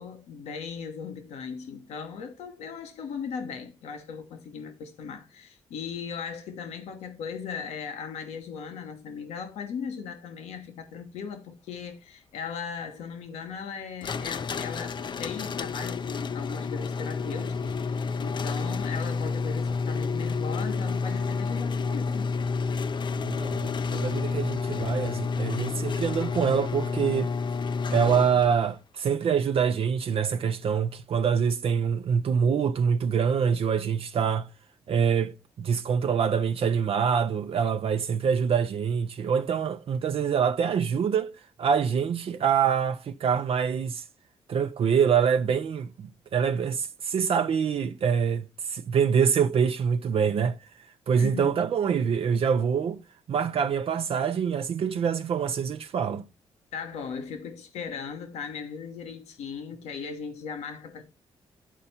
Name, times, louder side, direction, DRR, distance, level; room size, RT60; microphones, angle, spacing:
voice 1, 0.0-22.6 51.2-51.5 56.7-61.0, left 6 dB, 85° left, 1.2 m, -38 dB
sound 1, 14.0-28.7, left 4 dB, 45° left, 0.5 m, -30 dB
voice 2, 23.2-27.3 27.9-34.5 34.9-41.3 41.6-44.0 44.5-50.6 51.1-53.0 53.3-56.2, right 7 dB, 60° right, 0.5 m, -25 dB
9.9 x 4.3 x 4.2 m
supercardioid pair, 60°, 11 cm